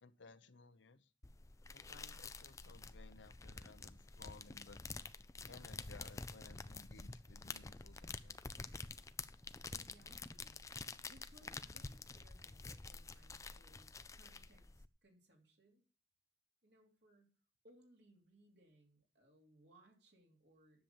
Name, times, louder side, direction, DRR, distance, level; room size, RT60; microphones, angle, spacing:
voice 1, 0.0-1.1 1.7-4.8 5.5-8.4, left 4 dB, 75° left, 12 dB, 0.8 m, -60 dB
sound 1, 1.2-14.8, left 4 dB, 15° left, 0.4 m, -49 dB
voice 2, 9.7-10.7 11.1-15.8 16.6-17.3 17.6-20.8, right 1 dB, 60° right, 1 dB, 3.1 m, -67 dB
10.5 x 7.1 x 7.2 m, 0.40 s
head